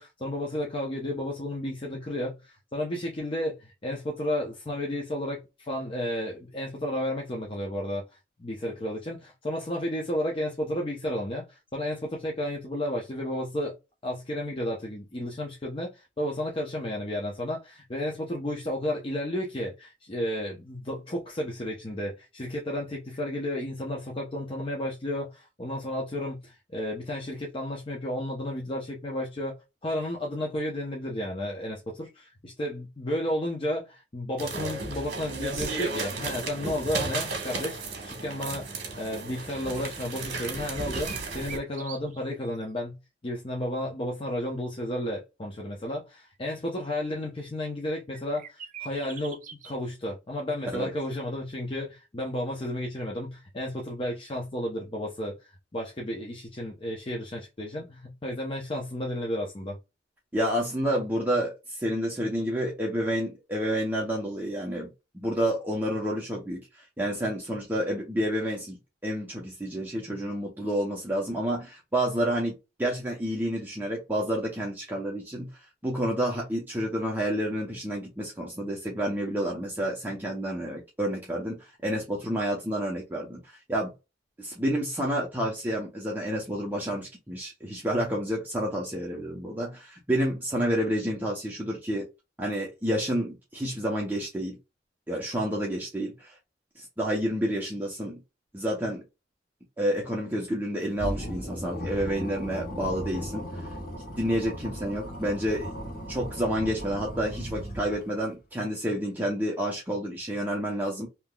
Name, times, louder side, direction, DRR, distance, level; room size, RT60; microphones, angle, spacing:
voice 1, 0.0-8.0 8.4-13.8 14.0-29.6 29.8-43.0 43.2-59.8, left 1 dB, 30° left, 0.7 m, -32 dB
sound 1, 34.4-41.6, right 3 dB, 60° right, 1.3 m, -34 dB
sound 2, 40.7-42.5 42.8-42.9 48.1-49.7, right 7 dB, 45° right, 0.6 m, -43 dB
voice 2, 60.3-64.9 65.1-68.8 69.0-83.9 84.4-92.0 92.4-94.6 95.1-96.3 96.8-98.2 98.5-99.0 99.8-103.7 104.2-105.7 106.1-111.1, equal, 10° right, 0.8 m, -29 dB
sound 3, 101.0-108.2, equal, 55° left, 1.3 m, -37 dB
3.5 x 2.9 x 2.2 m
head